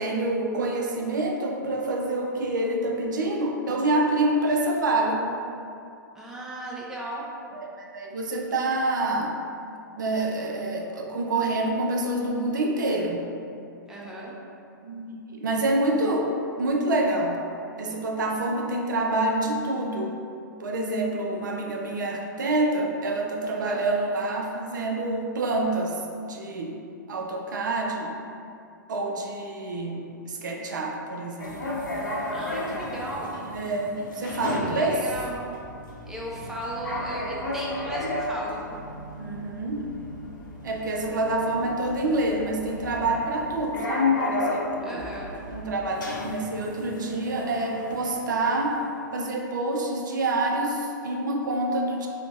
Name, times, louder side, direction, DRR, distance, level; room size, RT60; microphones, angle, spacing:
voice 1, 0.0-5.2 7.5-9.3 10.0-13.2 14.8-17.4 17.8-20.1 20.6-26.0 26.3-26.8 27.1-28.1 28.9-31.7 33.5-35.0 39.2-39.8 40.6-45.0 45.5-48.8 49.1-52.1, right 2 dB, 65° right, 1 dB, 0.4 m, -27 dB
voice 2, 6.1-7.3 13.9-14.4 23.5-23.8 29.9-30.1 32.3-33.4 34.7-35.7 36.1-38.9 44.8-45.4, right 1 dB, 5° right, -5 dB, 0.4 m, -36 dB
sound 1, 31.4-48.9, left 2 dB, 75° left, 0.6 m, -33 dB
2.8 x 2.0 x 3.3 m, 2.5 s
figure-of-eight pair, 110°, 11 cm